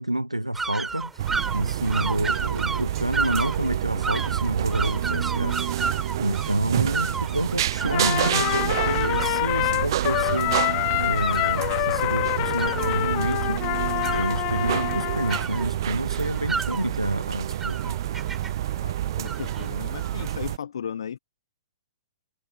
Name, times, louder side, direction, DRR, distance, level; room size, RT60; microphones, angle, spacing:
voice 1, 0.0-5.6 6.2-13.6 14.1-17.9, right 1 dB, 90° right, 0.7 m, -29 dB
sound 1, 0.5-20.4, right 4 dB, 10° right, 4.8 m, -34 dB
sound 2, 1.2-20.6, right 12 dB, 45° right, 1.5 m, -28 dB
Trumpet, 7.9-15.4, left 32 dB, 30° left, 0.3 m, -26 dB
voice 2, 18.8-21.2, left 8 dB, 60° left, 1.0 m, -35 dB
figure-of-eight pair, 115°, 3 cm